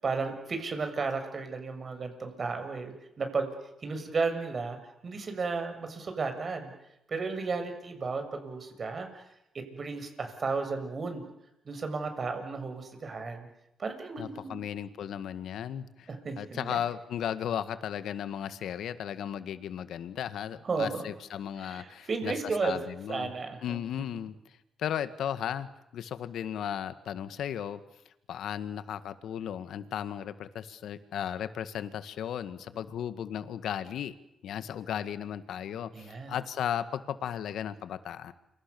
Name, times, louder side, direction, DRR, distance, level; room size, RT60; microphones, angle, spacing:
voice 1, 0.0-3.5 3.8-4.8 5.0-6.7 7.1-9.2 9.5-11.2 11.7-13.5 13.8-14.6 16.1-16.8 20.6-21.0 21.6-22.8 23.1-23.8 35.9-36.3, right 4 dB, 45° right, 6 dB, 7.1 m, -33 dB
voice 2, 14.2-16.1 16.4-22.4 22.6-23.3 23.6-24.3 24.8-27.8 28.3-34.1 34.4-38.3, left 9 dB, 80° left, 12 dB, 1.8 m, -35 dB
29.0 x 26.5 x 7.0 m, 0.84 s
cardioid pair, 70°, 0 cm